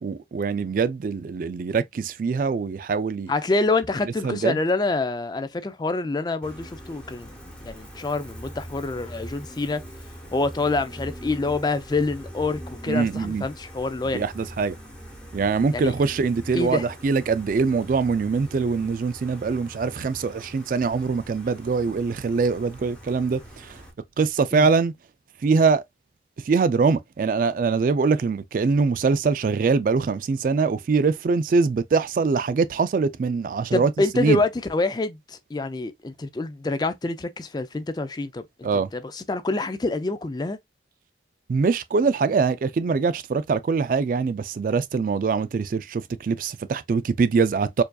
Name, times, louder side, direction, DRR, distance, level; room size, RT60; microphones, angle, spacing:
voice 1, 0.0-3.3 4.2-4.6 12.9-13.5 14.1-14.7 15.3-23.8 24.2-24.9 25.4-25.8 26.4-34.4 38.6-38.9 41.5-47.8, right 4 dB, 50° right, 0.3 m, -23 dB
voice 2, 3.3-7.3 7.6-9.8 10.3-14.2 15.7-15.9 16.5-16.8 24.5-24.7 33.7-40.6, left 3 dB, 25° left, 0.4 m, -26 dB
Gull seagull, 6.4-23.9, equal, 5° left, 1.0 m, -42 dB
4.5 x 2.7 x 2.3 m
head